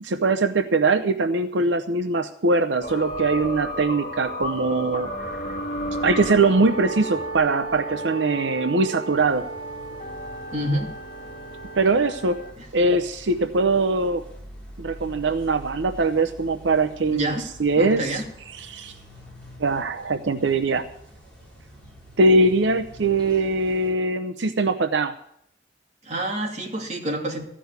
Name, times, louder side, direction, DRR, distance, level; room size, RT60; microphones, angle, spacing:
voice 1, 0.0-5.6 6.0-9.5 11.8-12.4 12.7-14.2 14.8-18.2 18.5-18.9 19.6-20.8 22.2-25.1, right 3 dB, 85° right, 8 dB, 0.7 m, -22 dB
sound 1, 2.8-12.5, right 1 dB, 45° left, 1.8 m, -32 dB
sound 2, 9.1-23.9, equal, 5° left, 4.7 m, -46 dB
voice 2, 10.5-10.9 17.1-17.4 17.8-18.2 26.0-27.5, right 1 dB, 40° right, 0 dB, 2.8 m, -27 dB
15.0 x 6.2 x 9.5 m, 0.72 s
head